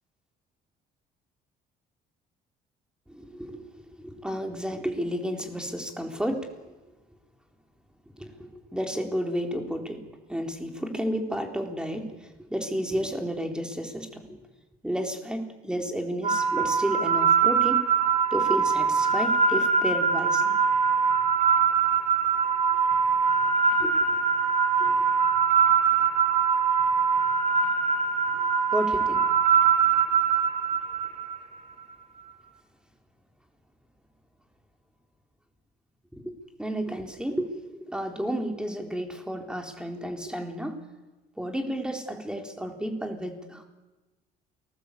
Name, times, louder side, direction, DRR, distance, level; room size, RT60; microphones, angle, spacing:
voice 1, 3.1-3.6 3.9-6.5 8.2-10.0 10.3-14.4 14.8-17.8 18.3-20.6 23.8-24.1 24.8-25.0 28.7-29.3 36.1-36.2 36.6-40.8 41.4-43.6, equal, 5° right, 4 dB, 4.0 m, -32 dB
sound 1, 16.2-31.4, right 6 dB, 40° right, 3.9 m, -23 dB
28.5 x 20.0 x 8.5 m, 1.2 s
cardioid pair, 110°, 17 cm